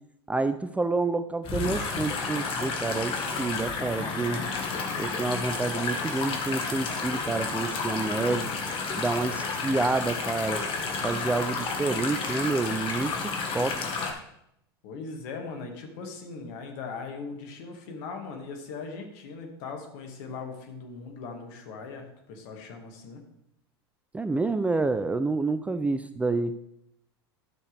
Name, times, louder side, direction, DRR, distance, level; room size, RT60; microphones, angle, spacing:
voice 1, 0.3-4.4 5.0-8.5 9.0-10.6 11.0-13.8 24.1-26.6, right 3 dB, 10° right, 11 dB, 0.4 m, -28 dB
sound 1, 1.4-14.1, left 4 dB, 40° left, 1.8 m, -31 dB
voice 2, 14.8-23.2, left 4 dB, 55° left, 3 dB, 2.2 m, -39 dB
12.5 x 6.5 x 3.5 m, 0.78 s
hypercardioid pair, 90°, 13 cm